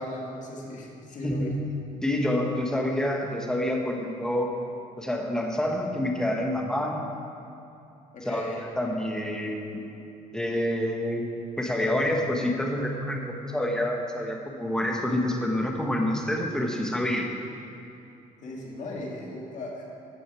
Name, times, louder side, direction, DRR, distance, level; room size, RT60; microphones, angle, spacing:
voice 1, 0.0-1.5 8.1-8.6 18.4-19.9, left 1 dB, 55° left, -2 dB, 2.0 m, -37 dB
voice 2, 2.0-4.5 5.0-7.1 8.2-10.0 10.3-11.3 11.6-17.3, left 1 dB, 5° left, 1 dB, 1.1 m, -27 dB
14.0 x 6.2 x 4.8 m, 2.7 s
cardioid pair, 115°, 15 cm